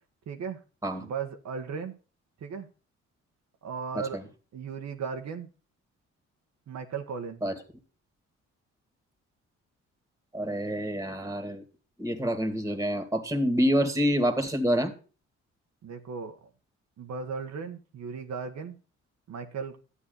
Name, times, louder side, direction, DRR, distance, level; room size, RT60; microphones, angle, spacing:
voice 1, 0.3-0.6 1.0-2.0 2.4-2.7 3.6-4.2 4.5-5.5 6.7-7.4 15.8-16.4 17.0-18.8 19.3-19.8, right 6 dB, 65° right, 5 dB, 1.4 m, -36 dB
voice 2, 10.3-11.6 12.0-14.9, equal, 10° right, 7 dB, 2.3 m, -27 dB
11.5 x 8.4 x 3.9 m, 0.35 s
cardioid pair, 90°, 30 cm